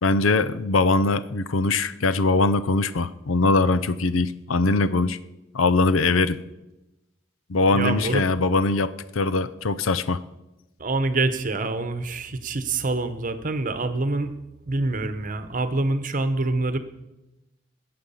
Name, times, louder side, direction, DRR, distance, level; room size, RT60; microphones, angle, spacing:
voice 1, 0.0-5.2 5.5-6.4 7.5-10.2, left 3 dB, 85° left, 14 dB, 0.6 m, -22 dB
voice 2, 7.7-8.2 10.8-14.3 14.7-16.8, right 2 dB, 40° right, 10 dB, 1.0 m, -26 dB
20.5 x 7.8 x 5.7 m, 0.99 s
head